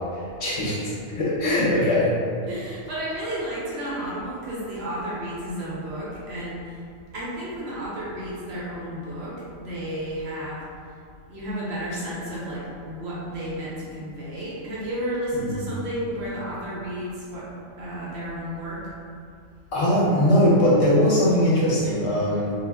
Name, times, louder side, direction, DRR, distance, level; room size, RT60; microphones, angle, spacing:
voice 1, 0.1-2.1 15.4-15.7 19.7-22.5, left 1 dB, 60° left, -7 dB, 0.8 m, -21 dB
voice 2, 2.4-6.8 7.1-10.6 11.3-17.5 17.8-18.8, equal, 60° right, -7 dB, 0.8 m, -32 dB
2.3 x 2.0 x 3.3 m, 2.3 s
omnidirectional pair, 1.4 m